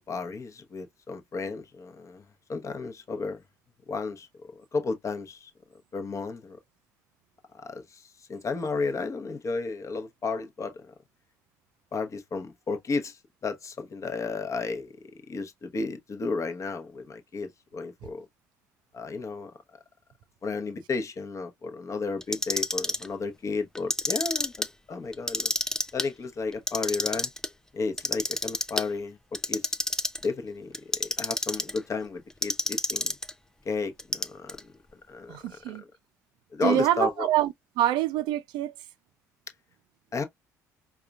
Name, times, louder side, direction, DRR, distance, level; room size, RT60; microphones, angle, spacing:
voice 1, 0.1-2.2 2.5-3.4 3.9-4.3 4.7-5.5 5.9-6.6 7.6-8.0 8.3-10.9 11.9-14.9 15.3-18.2 18.9-19.5 20.4-25.5 25.9-27.3 27.7-29.2 29.5-29.6 30.2-33.1 33.6-34.6 35.1-35.4 35.7-35.8 36.5-37.3 40.1-40.2, left 4 dB, 35° left, 0.9 m, -33 dB
Clock, 22.2-23.1 23.7-24.7 25.1-26.1 26.5-27.5 28.0-28.8 29.3-30.3 30.7-31.8 32.4-33.3 34.0-34.6, left 1 dB, 5° left, 0.5 m, -28 dB
voice 2, 35.3-35.8 36.6-38.7, right 12 dB, 60° right, 0.4 m, -26 dB
4.8 x 2.3 x 2.3 m
hypercardioid pair, 55°, 9 cm